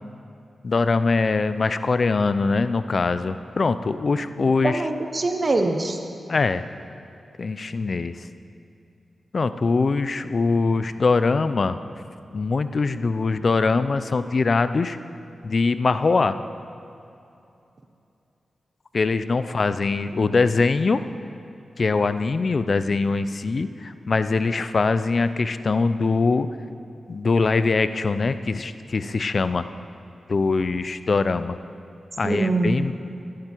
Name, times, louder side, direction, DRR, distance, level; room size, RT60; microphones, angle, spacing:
voice 1, 0.6-4.8 6.3-6.7 7.4-8.3 9.3-11.8 12.3-15.0 15.4-16.4 18.9-21.0 21.8-26.5 27.1-29.6 30.3-31.6 32.2-32.9, left 4 dB, 55° left, 12 dB, 0.5 m, -22 dB
voice 2, 4.6-6.1 32.2-32.8, right 2 dB, 45° right, 5 dB, 1.1 m, -23 dB
13.5 x 11.5 x 4.6 m, 2.7 s
cardioid pair, 60°, 0 cm